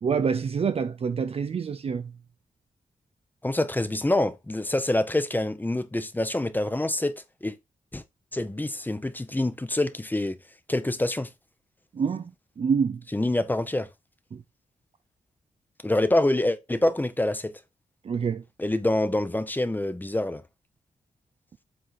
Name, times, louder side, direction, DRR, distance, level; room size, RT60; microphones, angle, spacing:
voice 1, 0.0-2.1 11.9-13.0 14.3-14.4 18.0-18.4, right 6 dB, 45° right, 0.4 m, -27 dB
voice 2, 3.4-7.1 7.4-7.5 7.9-8.0 8.3-10.4 10.7-11.3 13.1-13.9 15.8-17.5 18.6-20.4, left 1 dB, 15° left, 0.8 m, -26 dB
7.6 x 4.0 x 4.1 m
cardioid pair, 80°, 14 cm